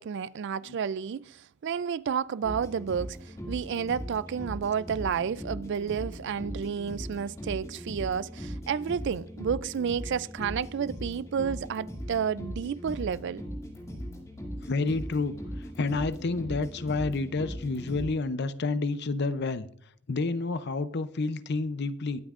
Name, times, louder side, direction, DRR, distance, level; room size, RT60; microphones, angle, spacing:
voice 1, 0.0-13.4, right 7 dB, 55° right, 0.3 m, -31 dB
sound 1, 2.4-18.1, equal, 15° left, 2.2 m, -39 dB
voice 2, 14.6-15.4 15.8-19.7 20.1-22.2, left 3 dB, 50° left, 0.6 m, -29 dB
21.5 x 8.7 x 2.5 m
head